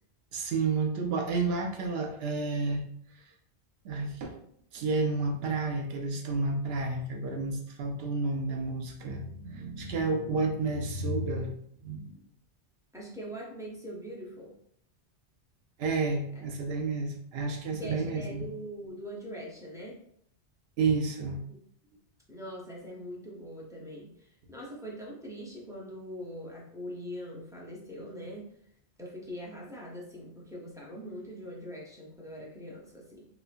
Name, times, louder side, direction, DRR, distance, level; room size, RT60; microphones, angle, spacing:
voice 1, 0.3-2.9 3.8-4.4 4.7-11.5 11.8-12.1 15.8-18.4 20.8-21.4, right 3 dB, 65° right, 2 dB, 0.8 m, -30 dB
voice 2, 12.9-14.5 16.3-16.5 17.8-20.0 21.5-21.6 22.3-28.5 29.0-33.3, equal, 5° right, -5 dB, 0.4 m, -42 dB
3.0 x 2.2 x 2.4 m, 0.66 s
omnidirectional pair, 1.1 m